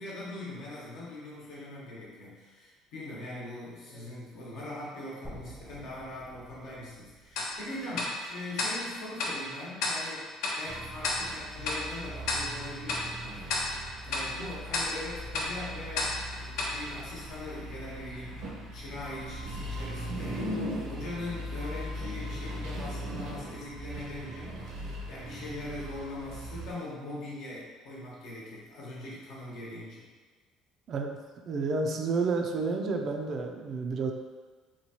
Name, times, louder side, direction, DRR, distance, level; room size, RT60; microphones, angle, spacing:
voice 1, 0.0-30.0, left 2 dB, 65° left, -6 dB, 1.0 m, -41 dB
sound 1, 5.2-9.3, right 1 dB, 10° left, 0.5 m, -51 dB
Tick-tock, 7.4-17.8, left 2 dB, 80° left, 0.5 m, -35 dB
sound 2, 10.7-26.7, equal, 80° right, 0.7 m, -39 dB
voice 2, 31.4-34.1, right 4 dB, 50° right, 3 dB, 0.3 m, -30 dB
3.0 x 2.3 x 2.8 m, 1.4 s
cardioid pair, 105°, 0 cm